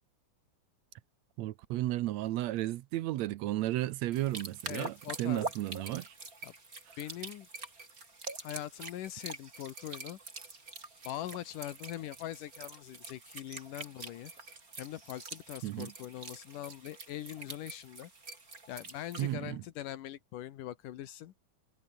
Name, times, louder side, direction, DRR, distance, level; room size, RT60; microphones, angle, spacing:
voice 1, 1.4-6.1 15.6-15.9 19.2-19.6, right 15 dB, 70° right, 1.8 m, -33 dB
sound 1, 4.1-19.3, right 3 dB, 25° right, 4.4 m, -46 dB
voice 2, 4.7-5.4 6.4-6.5 7.0-7.5 8.4-10.2 11.0-14.3 14.8-18.1 18.7-21.3, left 13 dB, 85° left, 2.8 m, -42 dB
omnidirectional pair, 3.6 m